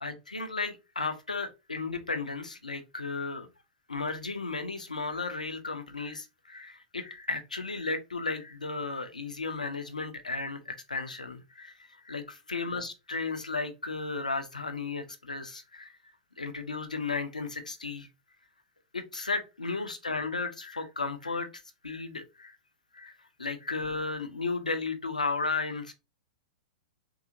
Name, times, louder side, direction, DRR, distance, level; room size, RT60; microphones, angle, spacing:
voice 1, 0.0-3.5 3.9-15.9 16.4-18.1 18.9-22.6 22.9-25.9, left 3 dB, 80° left, 0.6 m, -34 dB
3.8 x 2.7 x 2.5 m
figure-of-eight pair, 100°, 4 cm